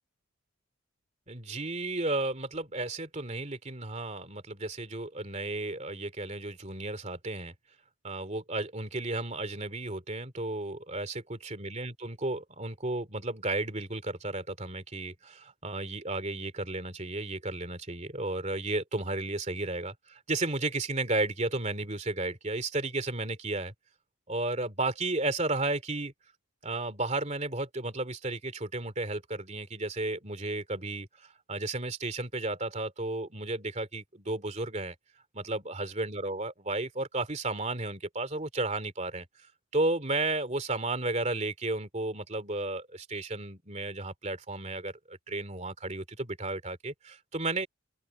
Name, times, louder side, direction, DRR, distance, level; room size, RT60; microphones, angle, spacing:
voice 1, 1.3-7.5 8.0-23.7 24.3-26.1 26.6-31.1 31.5-34.9 35.3-39.3 39.7-47.7, right 2 dB, 30° right, 2.9 m, -33 dB
open air
head